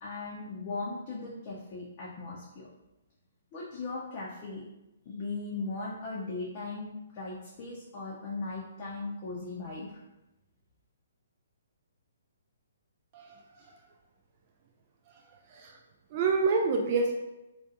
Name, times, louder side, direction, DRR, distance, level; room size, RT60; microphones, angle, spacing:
voice 1, 0.0-2.7 3.5-4.6 5.1-10.0, left 3 dB, 40° left, -6 dB, 0.5 m, -38 dB
voice 2, 16.1-17.1, right 4 dB, 40° right, 1 dB, 0.3 m, -27 dB
2.4 x 2.2 x 2.6 m, 0.96 s
figure-of-eight pair, 130°, 0 cm